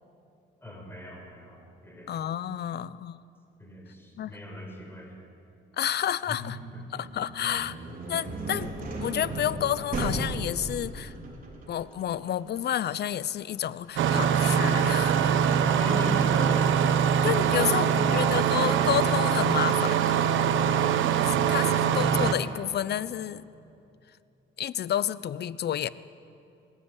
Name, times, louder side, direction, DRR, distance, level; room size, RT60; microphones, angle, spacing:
voice 1, 0.6-2.2 3.6-5.1 6.3-7.1 7.4-8.0 8.3-8.4 15.6-16.7 17.5-18.5, equal, 10° left, 1 dB, 5.6 m, -38 dB
voice 2, 2.1-3.2 4.2-4.3 5.8-6.6 6.9-7.8 8.1-8.7 9.0-11.1 11.7-15.5 17.2-20.3 20.8-20.9 21.5-21.6 21.9-23.4 24.6-25.9, left 10 dB, 55° left, 17 dB, 0.7 m, -30 dB
sound 1, 7.0-16.8, right 2 dB, 45° right, 4.8 m, -37 dB
Engine starting, 14.0-22.3, right 8 dB, 75° right, 1.1 m, -23 dB
20.0 x 15.5 x 9.7 m, 2.6 s
cardioid pair, 90°, 20 cm